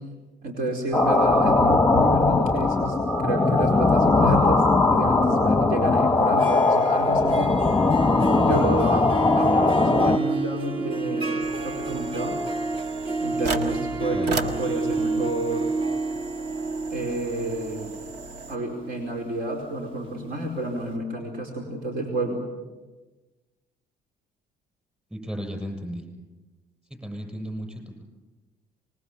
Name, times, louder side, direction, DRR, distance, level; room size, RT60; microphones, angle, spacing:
voice 1, 0.4-3.0 3.2-4.6 4.9-7.6 8.4-9.1 9.3-12.4 13.2-15.7 16.9-17.9 18.5-22.4, right 1 dB, 60° right, 2 dB, 4.6 m, -30 dB
sound 1, 0.9-10.2, left 3 dB, 10° left, 1.1 m, -20 dB
Harp, 6.2-20.2, right 3 dB, 30° right, 1.5 m, -30 dB
sound 2, 11.4-18.6, right 3 dB, 90° right, 1.9 m, -36 dB
voice 2, 25.1-26.1 27.0-28.0, equal, 10° right, 5 dB, 7.1 m, -34 dB
25.5 x 21.5 x 7.4 m, 1.2 s
cardioid pair, 110°, 17 cm